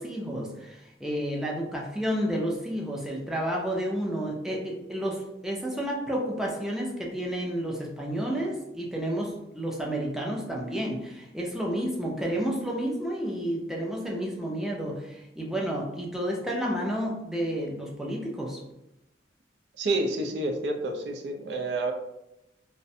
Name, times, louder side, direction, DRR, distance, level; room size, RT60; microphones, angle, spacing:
voice 1, 0.0-18.6, equal, 5° right, -2 dB, 0.4 m, -31 dB
voice 2, 19.8-21.9, right 2 dB, 75° right, 3 dB, 0.4 m, -29 dB
2.5 x 2.1 x 2.6 m, 0.89 s
head